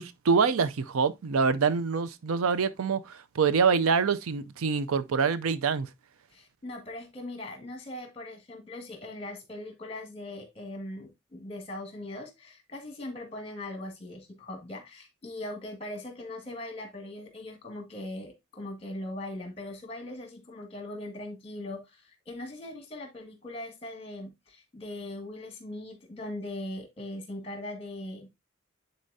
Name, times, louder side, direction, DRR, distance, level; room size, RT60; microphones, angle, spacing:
voice 1, 0.0-5.9, right 5 dB, 85° right, 0.5 m, -25 dB
voice 2, 6.3-28.3, left 1 dB, 25° left, 1.8 m, -40 dB
9.8 x 4.2 x 2.7 m
head